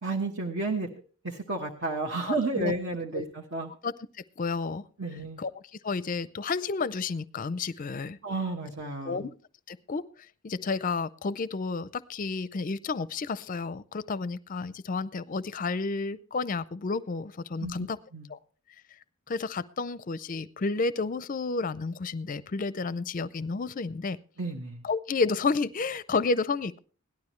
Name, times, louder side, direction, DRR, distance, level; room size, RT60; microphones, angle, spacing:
voice 1, 0.0-0.9 1.2-3.7 5.0-5.4 8.2-9.2 17.6-17.7 18.1-18.3 24.4-24.8, right 3 dB, 55° right, -1 dB, 1.3 m, -31 dB
voice 2, 2.3-2.7 3.1-3.2 3.8-3.9 4.4-4.8 5.4-8.2 9.0-9.3 9.7-10.0 10.4-18.0 18.3-18.4 19.3-24.2 24.8-26.8, left 4 dB, 40° left, 17 dB, 0.5 m, -31 dB
17.5 x 12.0 x 3.1 m, 0.39 s
head